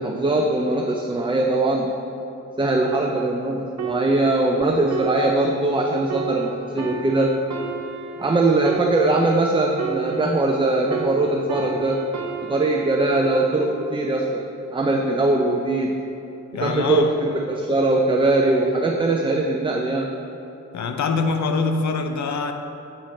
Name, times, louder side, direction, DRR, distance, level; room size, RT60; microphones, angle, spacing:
voice 1, 0.0-1.9 2.6-7.3 8.2-12.0 12.4-14.4 14.7-16.0 16.6-20.1, right 2 dB, 15° right, 1 dB, 0.4 m, -21 dB
sound 1, 3.8-10.6 10.9-14.5 15.1-15.3, right 7 dB, 70° right, 0.7 m, -33 dB
voice 2, 16.5-17.1 20.7-22.5, left 4 dB, 75° left, 7 dB, 0.6 m, -24 dB
7.8 x 4.3 x 5.1 m, 3.0 s
wide cardioid pair, 95°, 29 cm